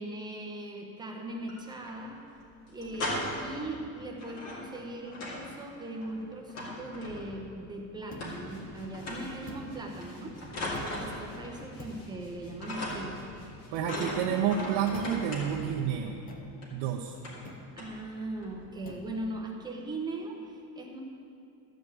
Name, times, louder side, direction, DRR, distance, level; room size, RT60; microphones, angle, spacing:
voice 1, 0.0-2.2 2.7-10.4 10.7-13.2 13.9-14.5 17.8-21.0, right 1 dB, 10° right, 0 dB, 0.9 m, -39 dB
sound 1, 1.3-2.0 2.2-2.3 2.7-3.6 4.2-5.5 5.8-7.5 8.2-8.7 8.9-9.4 10.0-11.7 11.9-12.3 12.6-13.3 13.8-15.8 16.6-16.7 17.2-17.5 17.8-18.0 18.4-18.7, left 1 dB, 35° left, 2.4 m, -38 dB
sound 2, 8.1-8.4 9.5-9.8 10.7-11.0 11.8-12.1 12.9-13.1 13.7-13.9 14.9-15.3 16.3-16.5 17.4-17.7 18.8-19.1, left 1 dB, 20° left, 0.8 m, -46 dB
sound 3, 8.3-15.9, equal, 60° left, 2.4 m, -50 dB
voice 2, 13.7-16.2 16.7-17.2, right 8 dB, 75° right, 0 dB, 0.9 m, -29 dB
13.0 x 5.3 x 8.3 m, 2.5 s
cardioid pair, 175°, 44 cm